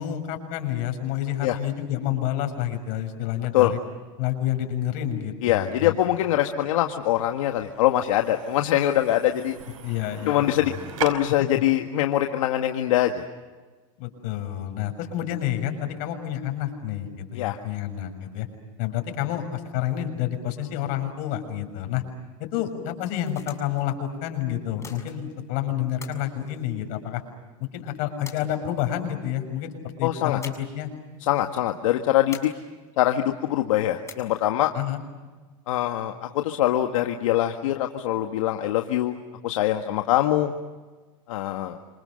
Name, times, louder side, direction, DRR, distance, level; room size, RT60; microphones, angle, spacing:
voice 1, 0.0-3.8 4.2-5.9 9.8-10.8 14.0-18.5 18.8-22.0 22.4-27.2 27.6-30.9 34.7-35.0, left 11 dB, 55° left, 6 dB, 6.7 m, -29 dB
voice 2, 5.4-9.6 10.3-10.7 11.0-13.2 17.3-17.6 30.0-30.4 31.3-32.5 33.0-34.7 35.7-39.2 39.4-40.5 41.3-41.8, left 13 dB, 80° left, 4 dB, 1.8 m, -23 dB
sound 1, 5.7-11.1, right 9 dB, 90° right, 5.1 m, -40 dB
sound 2, 23.0-23.8 24.8-25.5 26.0-27.3 28.3-29.0 30.4-30.9 31.1-31.3 32.3-33.1 34.1-34.6, left 5 dB, 15° left, 6.8 m, -44 dB
29.0 x 27.5 x 6.6 m, 1.3 s
supercardioid pair, 130°, 17 cm